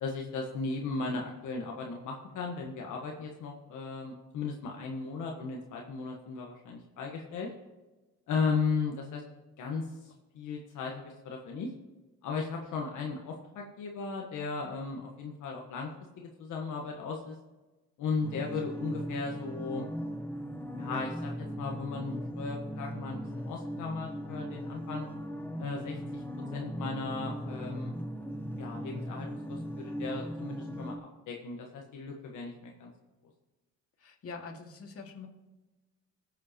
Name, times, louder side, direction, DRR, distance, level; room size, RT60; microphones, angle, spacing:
voice 1, 0.0-7.5 8.3-9.2 9.6-9.8 10.3-11.7 12.2-15.9 16.2-17.3 18.0-19.9 20.8-25.1 25.6-26.2 26.5-28.0 28.5-31.0 31.3-32.9, left 4 dB, 80° left, 0 dB, 1.5 m, -36 dB
sound 1, 18.2-31.0, equal, 5° left, 1.2 m, -38 dB
voice 2, 34.0-35.3, left 4 dB, 50° left, 1 dB, 2.2 m, -44 dB
20.5 x 7.6 x 3.0 m, 1.2 s
cardioid pair, 90°, 30 cm